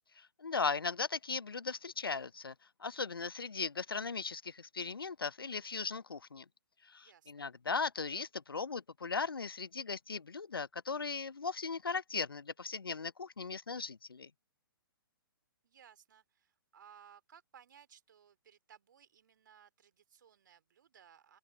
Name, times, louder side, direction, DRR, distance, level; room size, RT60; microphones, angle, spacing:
voice 1, 0.2-2.5 2.8-6.4 6.8-14.3, left 5 dB, 80° left, 0.7 m, -38 dB
voice 2, 7.0-7.5 15.6-21.4, right 8 dB, 60° right, 2.6 m, -61 dB
open air
figure-of-eight pair, 125°, 12 cm